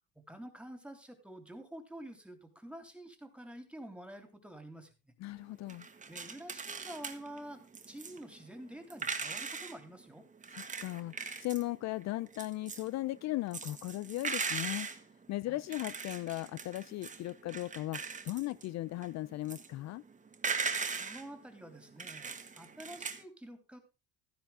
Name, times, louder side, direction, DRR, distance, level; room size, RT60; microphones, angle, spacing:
voice 1, 0.1-5.1 6.1-7.6 7.9-10.2 15.5-15.7 20.9-23.8, right 1 dB, 5° right, 3.3 m, -48 dB
voice 2, 5.2-5.9 10.5-14.9 15.3-20.0, left 17 dB, 55° left, 0.5 m, -37 dB
sound 1, 5.7-9.8 10.4-23.2, right 5 dB, 25° right, 1.8 m, -40 dB
14.5 x 10.5 x 3.6 m
cardioid pair, 105°, 32 cm